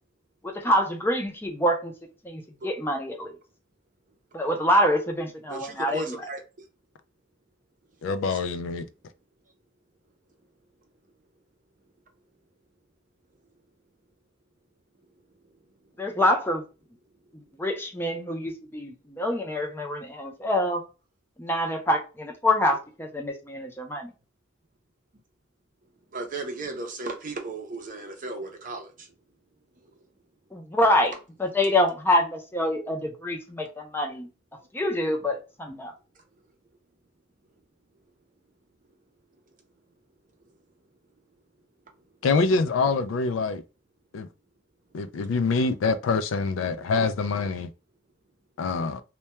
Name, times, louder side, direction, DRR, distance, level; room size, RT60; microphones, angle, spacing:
voice 1, 0.4-1.9 2.2-3.3 4.3-6.2 16.0-16.6 17.6-20.8 21.4-24.1 30.5-31.1 31.4-34.3 34.7-35.9, left 1 dB, 10° left, 0.5 m, -26 dB
voice 2, 5.5-6.4 8.3-8.4 26.1-29.1 29.8-29.9 34.6-34.7, right 2 dB, 45° right, 0.5 m, -35 dB
voice 3, 8.0-8.9 42.2-43.6 44.1-44.3 44.9-47.7 48.6-49.0, left 4 dB, 90° left, 0.3 m, -25 dB
2.2 x 2.2 x 2.8 m
head